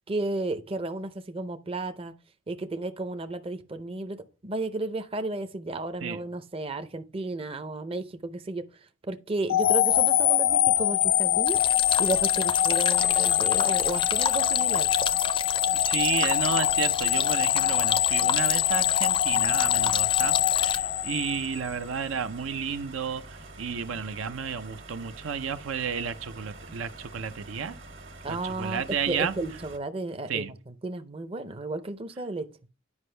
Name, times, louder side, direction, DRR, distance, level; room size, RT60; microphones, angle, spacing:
voice 1, 0.1-2.1 2.5-8.6 9.1-11.6 12.0-14.9 28.2-30.5 30.8-32.5, right 2 dB, 30° right, 0.5 m, -33 dB
sound 1, 9.5-21.7, left 12 dB, 80° left, 0.5 m, -24 dB
sound 2, 11.5-20.8, left 6 dB, 25° left, 0.4 m, -32 dB
voice 2, 15.9-23.2 23.6-27.8 28.3-29.3 30.3-30.5, right 6 dB, 85° right, 0.6 m, -32 dB
sound 3, 19.6-29.8, right 2 dB, 65° right, 1.6 m, -46 dB
9.7 x 5.3 x 3.3 m
head